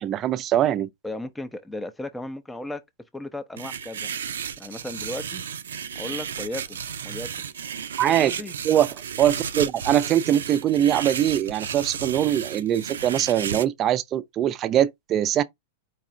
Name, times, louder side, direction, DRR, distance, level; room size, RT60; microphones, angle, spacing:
voice 1, 0.0-0.9 8.0-8.3 8.6-8.9 9.2-15.4, right 11 dB, 35° right, 0.6 m, -22 dB
voice 2, 1.0-2.8 3.1-4.1 4.6-5.4 5.9-6.8 7.0-7.3 8.2-8.5, left 1 dB, 5° left, 0.7 m, -35 dB
sound 1, 3.6-13.6, right 7 dB, 80° right, 0.6 m, -33 dB
4.7 x 2.5 x 4.2 m
hypercardioid pair, 110°, 0 cm